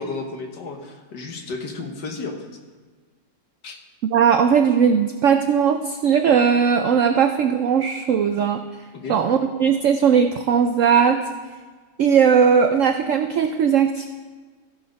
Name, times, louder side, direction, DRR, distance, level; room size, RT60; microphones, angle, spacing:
voice 1, 0.0-2.5 3.6-3.8 8.9-9.2, left 3 dB, 75° left, 3 dB, 1.9 m, -32 dB
voice 2, 4.1-8.6 9.1-11.2 12.0-14.1, right 7 dB, 80° right, 8 dB, 0.7 m, -18 dB
15.0 x 6.5 x 5.1 m, 1.4 s
omnidirectional pair, 1.9 m